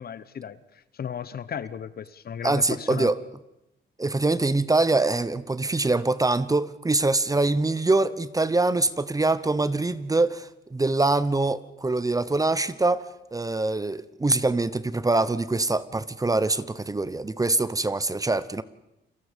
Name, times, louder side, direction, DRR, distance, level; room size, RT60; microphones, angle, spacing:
voice 1, 0.0-3.1, left 8 dB, 50° left, 15 dB, 1.1 m, -35 dB
voice 2, 2.4-3.2 4.0-18.6, right 2 dB, 15° right, 15 dB, 1.0 m, -24 dB
29.5 x 22.5 x 5.3 m, 0.90 s
cardioid pair, 90°, 20 cm